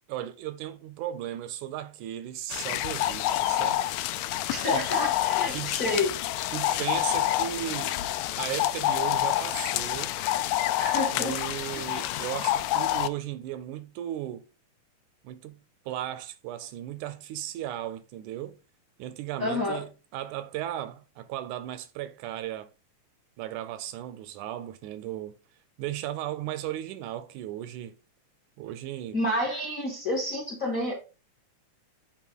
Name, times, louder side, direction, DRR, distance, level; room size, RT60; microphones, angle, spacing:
voice 1, 0.1-3.8 4.7-4.8 5.5-5.8 6.5-7.9 8.4-10.2 11.1-14.5 15.2-15.6 15.9-18.6 19.0-22.7 23.4-25.3 25.8-28.0 28.6-29.2, right 12 dB, 80° right, 1.9 m, -36 dB
sound 1, 2.5-13.1, left 13 dB, 85° left, 2.1 m, -28 dB
voice 2, 4.5-6.1 10.8-11.4 11.7-11.8 19.4-19.8 29.1-30.9, left 1 dB, 40° left, 1.3 m, -29 dB
8.2 x 3.6 x 4.6 m
omnidirectional pair, 3.7 m